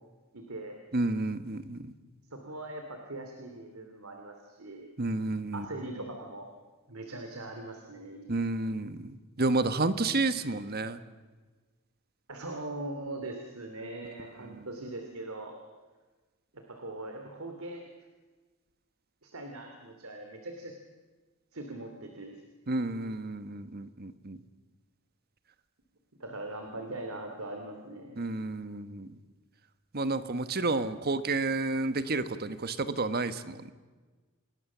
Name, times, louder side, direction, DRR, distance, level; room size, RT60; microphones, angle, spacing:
voice 1, 0.3-0.8 2.3-4.9 5.5-6.5 6.9-8.3 12.3-15.5 16.5-17.8 19.2-20.7 21.5-22.4 26.2-28.2, right 2 dB, 75° right, 4 dB, 2.8 m, -41 dB
voice 2, 0.9-1.8 5.0-5.6 8.3-11.0 22.7-24.4 28.2-29.1 29.9-33.7, right 2 dB, 45° right, 12 dB, 1.2 m, -30 dB
28.0 x 19.5 x 7.3 m, 1.3 s
head